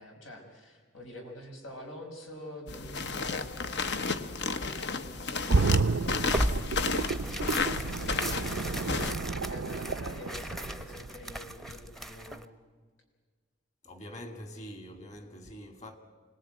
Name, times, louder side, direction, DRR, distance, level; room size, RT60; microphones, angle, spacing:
voice 1, 0.0-6.4 6.8-8.8 9.5-12.5, left 1 dB, 85° left, 5.5 m, -47 dB
sound 1, 2.7-9.1, left 4 dB, 60° left, 1.0 m, -33 dB
sound 2, 5.5-11.3 11.7-11.8, right 3 dB, 85° right, 0.6 m, -31 dB
Tearing, 6.3-12.5, equal, ahead, 0.8 m, -37 dB
voice 2, 13.8-16.0, equal, 35° left, 2.4 m, -44 dB
25.5 x 19.0 x 8.9 m
head